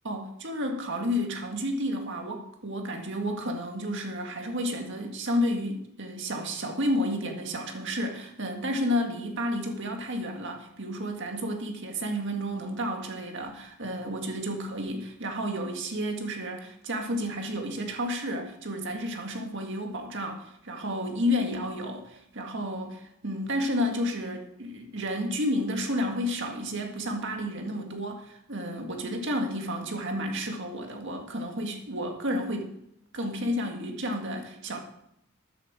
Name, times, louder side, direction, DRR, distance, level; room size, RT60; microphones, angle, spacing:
voice 1, 0.0-32.7 33.1-34.8, equal, 55° right, 3 dB, 2.0 m, -31 dB
13.0 x 10.0 x 4.9 m, 0.77 s
head